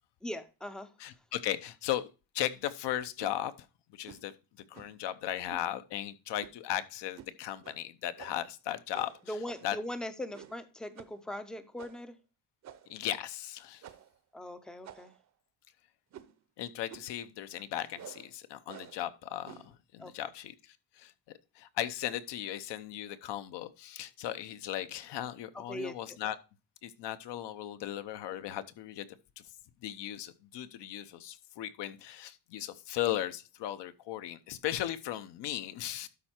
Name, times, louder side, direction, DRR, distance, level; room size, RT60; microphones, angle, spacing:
voice 1, 0.2-0.9 9.3-12.2 14.3-15.1 20.0-20.3 25.7-26.2, left 1 dB, ahead, 0.5 m, -40 dB
voice 2, 1.0-2.1 2.3-3.5 3.9-4.3 4.7-9.1 9.6-9.8 12.9-13.8 16.6-21.1 21.5-26.4 26.8-29.1 29.4-29.5 29.8-36.1, left 12 dB, 65° left, 0.9 m, -37 dB
sound 1, 3.2-3.4 4.1-4.3 4.7-5.0 5.5-5.7 6.4-6.7 7.2-7.3 7.6-7.8 8.2-8.5 8.9-9.8 10.3-10.7 11.0-11.2 11.8-12.1 12.6-13.0 13.8-14.2 14.8-15.3 16.1-16.4 16.9-17.2 18.0-18.3 18.7-19.0 19.4-19.8, right 10 dB, 40° right, 0.7 m, -50 dB
12.5 x 4.4 x 4.4 m
cardioid pair, 160°, 45 cm